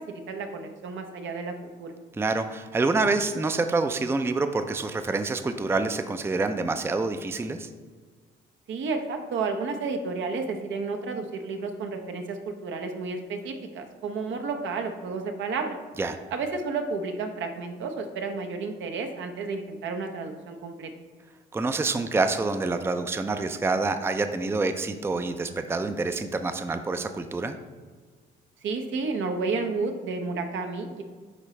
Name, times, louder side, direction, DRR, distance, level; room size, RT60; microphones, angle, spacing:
voice 1, 0.0-1.9 8.7-15.8 16.3-20.9 28.6-31.0, right 4 dB, 75° right, 5 dB, 0.9 m, -31 dB
voice 2, 2.2-7.7 16.0-16.2 21.5-27.5, right 3 dB, 10° right, 8 dB, 0.4 m, -27 dB
10.0 x 3.8 x 3.2 m, 1.5 s
cardioid pair, 90°, 20 cm